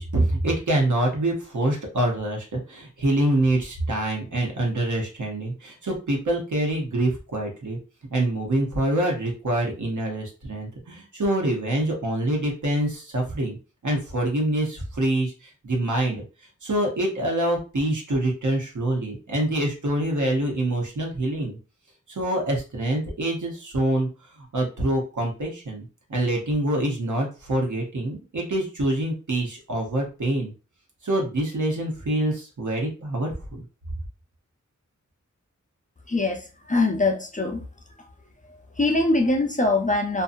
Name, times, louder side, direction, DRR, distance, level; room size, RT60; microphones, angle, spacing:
voice 1, 0.0-7.8 8.1-13.6 13.8-16.2 16.6-21.6 22.1-24.1 24.5-25.8 26.1-30.5 31.0-33.6, right 1 dB, 75° right, 0 dB, 1.0 m, -25 dB
voice 2, 36.1-37.6 38.5-40.2, left 2 dB, 25° left, 2 dB, 0.5 m, -23 dB
2.6 x 2.2 x 2.5 m, 0.33 s
wide cardioid pair, 70°, 30 cm